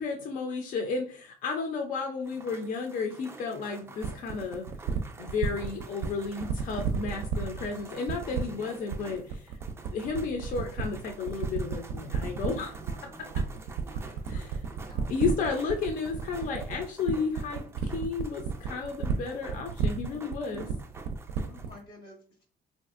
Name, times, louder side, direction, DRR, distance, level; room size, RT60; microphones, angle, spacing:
voice 1, 0.0-4.7 5.2-9.6 9.9-12.8 14.3-14.6 15.1-20.7, left 4 dB, 50° left, 3 dB, 0.5 m, -33 dB
sound 1, 2.2-21.7, right 3 dB, 15° right, 0.3 m, -49 dB
sound 2, 4.0-21.8, right 6 dB, 80° right, 0.4 m, -32 dB
voice 2, 7.7-8.2 12.8-13.4 13.7-15.1 20.5-20.7 21.4-22.4, equal, 90° left, 1 dB, 1.3 m, -52 dB
3.1 x 2.6 x 2.4 m, 0.43 s
cardioid pair, 110°, 17 cm